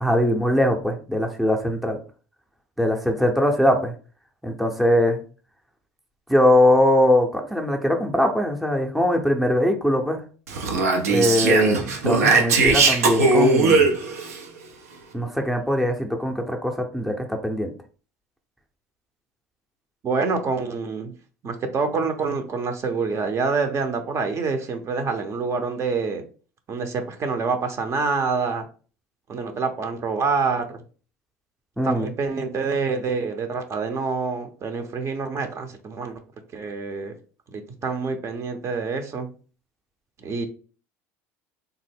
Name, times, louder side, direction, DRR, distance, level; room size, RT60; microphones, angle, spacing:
voice 1, 0.0-2.0 2.8-3.9 4.4-5.2 6.3-10.2 11.1-13.9 15.1-17.7 31.8-32.1, left 1 dB, ahead, 2 dB, 0.6 m, -21 dB
Speech, 10.5-14.4, right 3 dB, 90° right, 0.6 m, -19 dB
voice 2, 20.0-21.1 21.4-26.2 26.7-28.6 29.3-30.8 31.8-36.2 36.5-37.1 37.5-39.3 40.2-40.5, right 4 dB, 40° right, 6 dB, 0.6 m, -26 dB
3.4 x 2.0 x 3.4 m, 0.38 s
hypercardioid pair, 80°, 8 cm